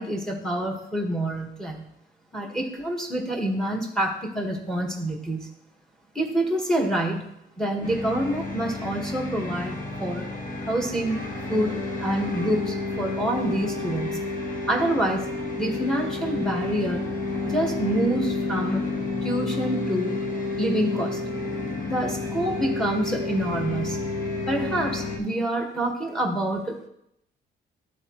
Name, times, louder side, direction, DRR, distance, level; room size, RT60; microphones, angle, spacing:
voice 1, 0.0-1.9 2.3-5.5 6.2-10.3 10.7-14.3 14.7-15.3 15.6-17.1 17.4-18.9 19.2-20.2 20.6-21.2 21.9-24.0 24.5-26.9, right 1 dB, 5° left, 0 dB, 1.9 m, -27 dB
sound 1, 7.8-25.2, left 3 dB, 45° left, 1.7 m, -30 dB
12.0 x 4.2 x 3.2 m, 0.79 s
cardioid pair, 90°, 20 cm